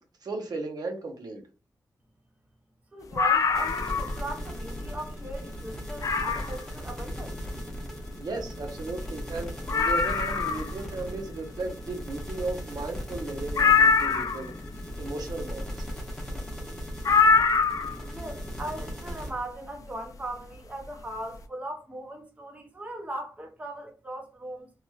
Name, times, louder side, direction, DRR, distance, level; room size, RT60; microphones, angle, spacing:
voice 1, 0.2-1.4 8.2-14.5 15.0-15.9, right 2 dB, 65° right, 0.7 m, -35 dB
voice 2, 2.9-7.4 18.1-24.7, right 1 dB, 20° right, 0.6 m, -38 dB
sound 1, 3.1-4.2 4.6-4.7 5.3-5.4 6.0-6.6 8.4-8.5 8.6-8.7 9.2-9.3 9.7-10.7 13.6-14.5 17.0-18.1 19.4-19.5, left 5 dB, 50° left, 0.4 m, -23 dB
sound 2, 3.5-19.3, equal, 5° left, 0.8 m, -37 dB
3.0 x 2.9 x 2.3 m
wide cardioid pair, 145°, 7 cm